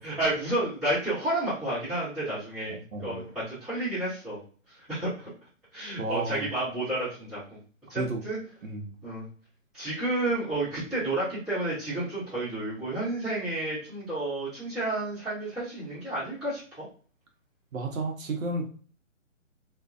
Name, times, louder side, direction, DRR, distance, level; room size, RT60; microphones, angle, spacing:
voice 1, 0.0-4.4 4.7-5.3 5.7-7.6 7.9-8.4 9.0-9.3 9.7-16.8, right 1 dB, ahead, -16 dB, 0.8 m, -31 dB
voice 2, 2.7-3.2 6.0-6.5 8.0-8.2 8.6-9.0 17.7-18.7, right 3 dB, 80° right, 3 dB, 0.8 m, -32 dB
2.5 x 2.1 x 2.4 m, 0.41 s
hypercardioid pair, 150°, 40 cm